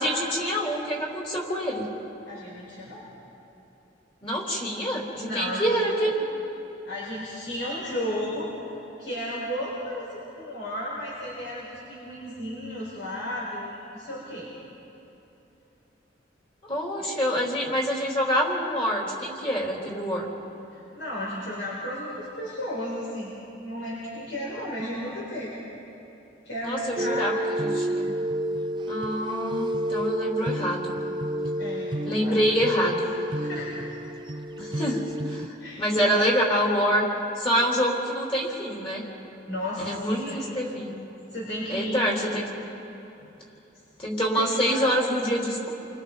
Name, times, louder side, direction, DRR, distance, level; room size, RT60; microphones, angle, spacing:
voice 1, 0.0-1.9 4.2-6.2 16.6-20.3 24.5-24.6 26.6-28.1 28.9-31.0 32.1-33.1 34.6-37.1 37.4-39.0 39.8-40.9 41.7-42.5 44.0-45.7, equal, 30° left, -3 dB, 3.5 m, -26 dB
voice 2, 2.3-3.1 5.2-5.7 6.9-8.5 9.0-14.5 17.0-17.1 20.7-25.5 26.4-27.3 31.6-32.4 33.3-33.7 35.6-36.2 39.5-40.4 41.3-42.2 43.2-43.3 44.4-45.0, left 1 dB, 80° left, -6 dB, 5.0 m, -34 dB
sound 1, 27.0-35.5, right 1 dB, 25° right, 0.5 m, -30 dB
29.0 x 25.0 x 4.1 m, 3.0 s
head